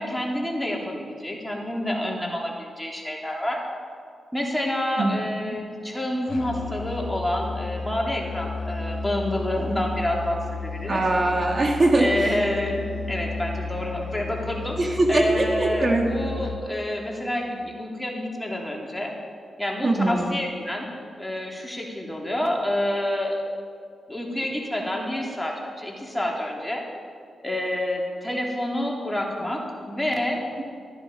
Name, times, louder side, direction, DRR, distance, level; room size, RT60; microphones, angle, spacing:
voice 1, 0.0-3.6 4.3-11.0 12.0-19.1 19.6-20.9 21.2-23.4 24.1-26.9 27.4-30.4, left 1 dB, 10° left, -1 dB, 2.9 m, -28 dB
Musical instrument, 6.3-16.7, left 4 dB, 70° left, 0.7 m, -33 dB
voice 2, 10.9-12.1 14.8-16.1 19.8-20.3, right 2 dB, 45° right, 2 dB, 1.5 m, -21 dB
13.0 x 11.0 x 5.3 m, 2.2 s
supercardioid pair, 50°, 0 cm